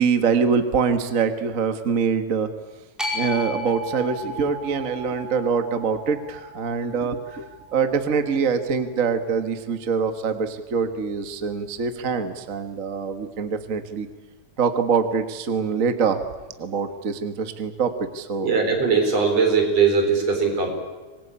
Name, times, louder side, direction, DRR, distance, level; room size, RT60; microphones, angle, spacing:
voice 1, 0.0-2.5 3.1-7.4 7.7-14.1 14.6-16.2 16.6-18.5, right 5 dB, 40° right, 8 dB, 1.2 m, -24 dB
sound 1, 3.0-9.2, equal, ahead, 4.6 m, -35 dB
voice 2, 18.4-20.7, right 5 dB, 60° right, 3 dB, 5.5 m, -20 dB
25.5 x 20.5 x 8.7 m, 1.2 s
omnidirectional pair, 3.3 m